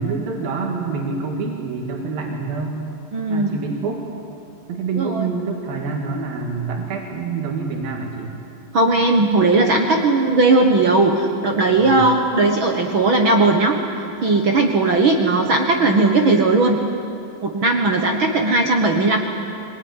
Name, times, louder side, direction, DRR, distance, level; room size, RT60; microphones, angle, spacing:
voice 1, 0.0-2.8 3.3-4.0 4.7-8.4 11.8-12.0, right 4 dB, 75° right, 1 dB, 3.9 m, -26 dB
voice 2, 3.1-3.5 5.0-5.3 8.7-13.8 14.2-16.8 17.4-19.2, right 3 dB, 55° right, 3 dB, 1.4 m, -17 dB
23.5 x 20.5 x 9.8 m, 2.6 s
omnidirectional pair, 4.2 m